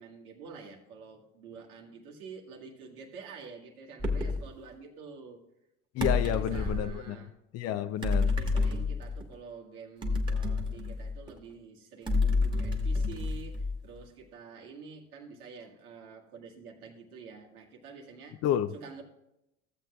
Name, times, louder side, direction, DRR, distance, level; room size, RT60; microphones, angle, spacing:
voice 1, 0.0-5.4 6.2-7.3 8.2-18.4 18.7-19.0, right 5 dB, 80° right, 1.8 m, -48 dB
sound 1, 4.0-4.5 6.0-6.9 8.0-9.3 10.0-11.4 12.1-14.0, left 3 dB, 10° right, 1.4 m, -29 dB
voice 2, 5.9-7.2 7.5-8.3 18.4-18.7, left 11 dB, 35° left, 0.4 m, -30 dB
15.0 x 7.7 x 2.4 m
hypercardioid pair, 85°, 44 cm